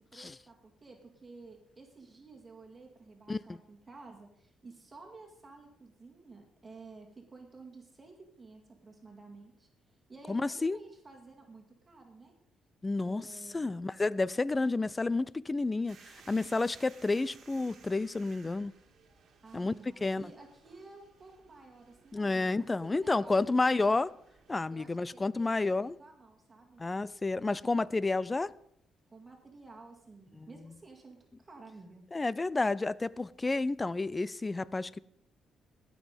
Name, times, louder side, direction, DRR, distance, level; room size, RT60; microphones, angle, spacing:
voice 1, 0.1-12.3 13.0-13.8 19.4-23.8 24.7-26.8 29.1-32.1, right 3 dB, 25° right, 2.1 m, -53 dB
voice 2, 10.3-10.8 12.8-13.3 13.5-18.7 19.5-19.7 20.0-20.3 22.1-24.1 24.5-26.0 26.8-28.5 30.4-30.5 32.1-35.0, left 3 dB, 20° left, 0.3 m, -30 dB
sound 1, 15.9-24.5, right 6 dB, 60° right, 1.8 m, -60 dB
17.5 x 6.2 x 5.2 m
cardioid pair, 90°, 0 cm